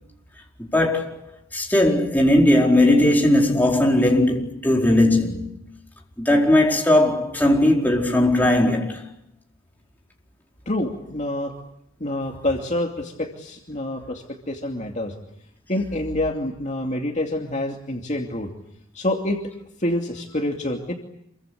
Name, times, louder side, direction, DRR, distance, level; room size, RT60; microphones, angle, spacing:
voice 1, 0.6-1.2 1.5-5.5 6.2-9.0, left 1 dB, 10° left, 4.6 m, -18 dB
voice 2, 10.7-11.5 12.0-15.1 15.7-18.5 18.9-19.4 19.8-20.9, left 1 dB, 35° left, 2.6 m, -27 dB
27.5 x 24.0 x 8.5 m
head